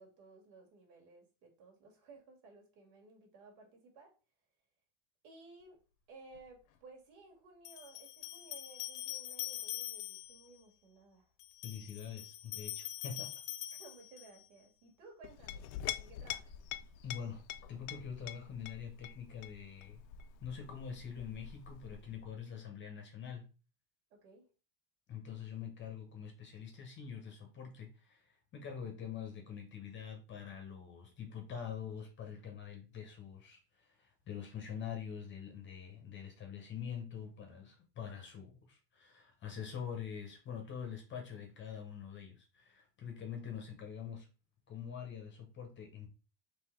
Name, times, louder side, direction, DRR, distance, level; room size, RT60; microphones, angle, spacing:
voice 1, 0.0-4.1 5.2-5.8 6.1-11.3 13.7-15.7 16.0-16.5 24.1-24.5, right 3 dB, 75° right, 1.9 m, -57 dB
sound 1, 6.4-6.5 7.6-10.5 11.4-14.5, left 13 dB, 80° left, 0.9 m, -44 dB
voice 2, 11.6-13.3 17.0-17.4 17.7-20.0 20.4-23.5 25.1-44.3 44.7-46.1, left 7 dB, 25° left, 0.7 m, -45 dB
Chink clink, 15.2-22.3, left 11 dB, 60° left, 0.5 m, -46 dB
3.8 x 2.9 x 4.3 m
cardioid pair, 155°, 49 cm